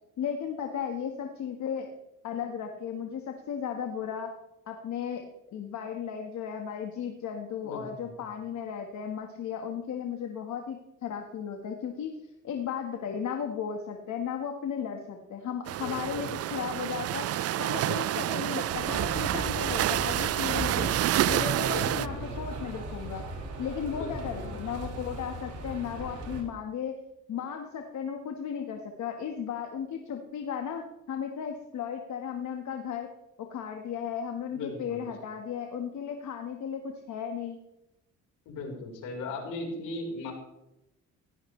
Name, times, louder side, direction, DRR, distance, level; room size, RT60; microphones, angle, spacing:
voice 1, 0.2-1.9 2.2-4.3 4.7-5.2 5.5-12.1 12.4-17.3 17.6-20.9 21.3-23.2 23.6-26.9 27.3-33.1 33.5-37.6, left 7 dB, 70° left, 3 dB, 1.7 m, -35 dB
voice 2, 7.6-8.2 15.8-16.3 21.7-22.3 23.9-24.7 34.5-35.1 38.5-40.3, left 3 dB, 85° left, 1 dB, 4.5 m, -38 dB
sound 1, 15.7-22.1, right 13 dB, 55° right, 0.4 m, -28 dB
sound 2, 18.7-26.4, right 2 dB, 80° right, 5.3 m, -38 dB
17.0 x 14.5 x 3.3 m, 0.89 s
cardioid pair, 90°, 30 cm